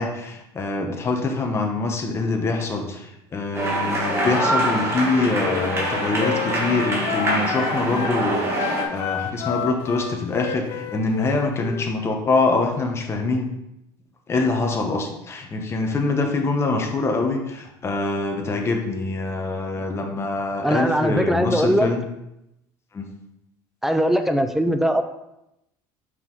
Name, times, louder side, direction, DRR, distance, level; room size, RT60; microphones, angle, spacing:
voice 1, 0.0-13.5 14.3-22.0 22.9-23.1, left 3 dB, 25° left, 3 dB, 1.1 m, -24 dB
sound 1, 3.5-8.8, right 1 dB, 25° right, 1.5 m, -24 dB
Wind instrument woodwind instrument, 5.1-8.2 8.5-11.9, left 10 dB, 70° left, 0.6 m, -31 dB
voice 2, 20.6-21.9 23.8-25.0, equal, 5° right, 8 dB, 0.5 m, -20 dB
5.5 x 4.7 x 4.0 m, 0.86 s
cardioid pair, 120°, 10 cm